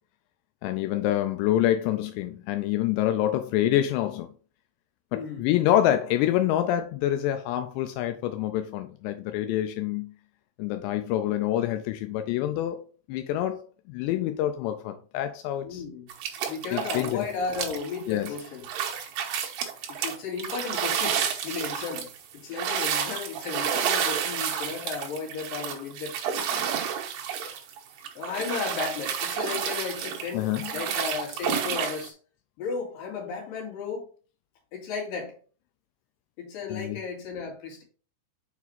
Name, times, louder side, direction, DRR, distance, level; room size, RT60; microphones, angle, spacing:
voice 1, 0.6-4.3 5.1-10.1 10.6-15.8 16.7-17.2 18.1-18.3 30.3-30.7 36.7-37.0, left 12 dB, 85° left, 2.5 m, -26 dB
voice 2, 5.1-5.5 15.6-16.1 16.5-18.7 19.9-22.1 22.3-26.6 28.1-32.1 32.6-34.1 34.7-35.3 36.4-37.8, left 5 dB, 55° left, 3.2 m, -34 dB
sound 1, 16.1-17.2 17.5-32.1, right 8 dB, 80° right, 2.0 m, -30 dB
6.7 x 4.8 x 4.1 m
omnidirectional pair, 5.6 m